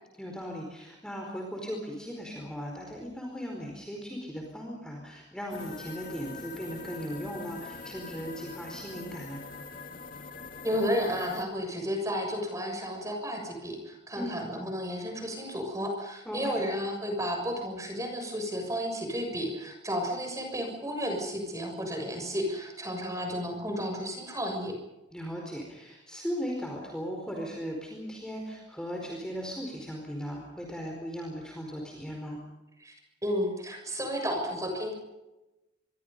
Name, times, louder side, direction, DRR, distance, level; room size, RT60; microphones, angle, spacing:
voice 1, 0.2-9.4 14.2-14.4 16.3-16.7 25.1-32.4, equal, 5° left, 0 dB, 4.6 m, -37 dB
sound 1, 5.5-11.4, left 4 dB, 45° left, 2.4 m, -43 dB
voice 2, 10.6-24.7 32.8-32.9 33.2-34.9, equal, 15° right, 4 dB, 6.9 m, -32 dB
26.0 x 23.5 x 5.4 m, 1.0 s
head